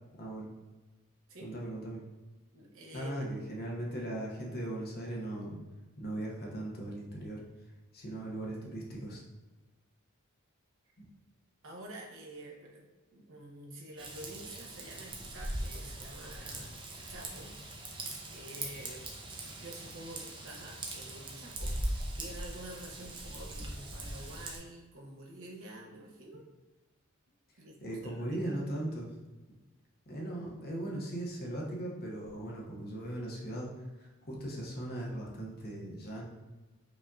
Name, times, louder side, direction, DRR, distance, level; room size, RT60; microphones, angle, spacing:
voice 1, 0.1-0.5 1.4-2.0 2.9-5.6 6.0-7.4 7.9-9.2 27.8-29.1 30.1-36.2, right 1 dB, 45° left, -2 dB, 0.7 m, -38 dB
voice 2, 2.5-3.3 11.6-12.8 13.1-16.8 17.1-17.5 18.3-19.1 19.4-26.4 27.6-28.7, right 1 dB, 65° right, -1 dB, 0.8 m, -48 dB
Raindrop / Vehicle horn car horn honking / Trickle dribble, 14.0-24.6, right 1 dB, 25° right, 0.5 m, -40 dB
4.9 x 2.6 x 2.3 m, 1.2 s
head